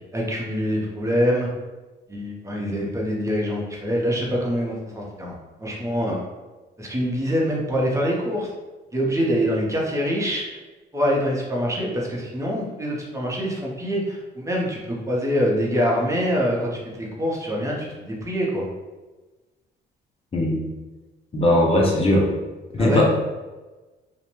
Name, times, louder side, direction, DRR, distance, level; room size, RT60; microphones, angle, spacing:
voice 1, 0.1-1.5 2.1-5.3 5.6-6.2 6.8-8.5 8.9-10.4 10.9-18.7 22.8-23.0, equal, 15° right, -3 dB, 0.7 m, -24 dB
voice 2, 20.3-20.7 21.3-22.3 22.7-23.0, left 1 dB, 30° left, -2 dB, 0.6 m, -19 dB
2.5 x 2.1 x 3.0 m, 1.2 s
cardioid pair, 90°, 20 cm